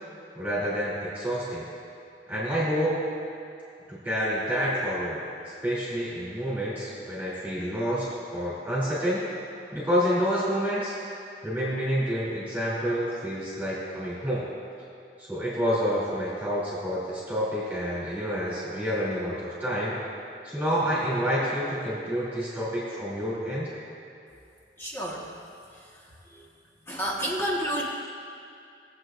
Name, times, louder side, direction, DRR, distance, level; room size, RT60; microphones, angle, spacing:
voice 1, 0.3-1.7 2.3-3.0 3.9-5.2 5.6-9.2 9.7-10.9 11.4-14.4 15.2-19.9 20.4-23.7, equal, 10° right, -9 dB, 2.9 m, -28 dB
voice 2, 24.8-25.3 26.3-26.4 26.9-27.8, equal, 15° left, -4 dB, 1.5 m, -29 dB
21.5 x 8.1 x 2.6 m, 2.6 s
head